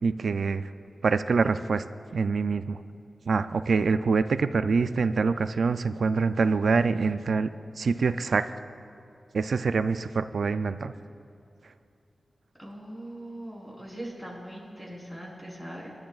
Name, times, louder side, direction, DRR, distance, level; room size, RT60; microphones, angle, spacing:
voice 1, 0.0-0.7 1.0-1.8 2.1-2.8 3.3-7.5 7.8-8.5 9.3-10.9, right 4 dB, 80° right, 11 dB, 0.3 m, -25 dB
voice 2, 12.6-15.9, right 1 dB, 10° left, -3 dB, 3.6 m, -40 dB
26.5 x 12.0 x 2.4 m, 2.4 s
wide cardioid pair, 90°, 0 cm